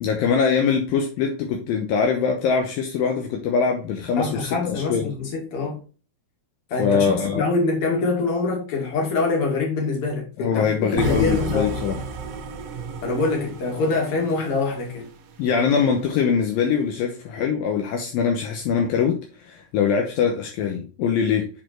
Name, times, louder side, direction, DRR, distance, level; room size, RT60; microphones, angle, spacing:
voice 1, 0.0-5.0 6.8-7.5 10.4-12.0 15.4-21.5, left 6 dB, 75° left, 2.6 m, -23 dB
voice 2, 4.2-5.8 6.7-10.6 10.9-11.8 13.0-15.1, left 3 dB, 40° left, 2.8 m, -24 dB
sound 1, 11.0-15.1, right 4 dB, 85° right, 1.3 m, -32 dB
7.7 x 4.3 x 4.4 m
omnidirectional pair, 4.4 m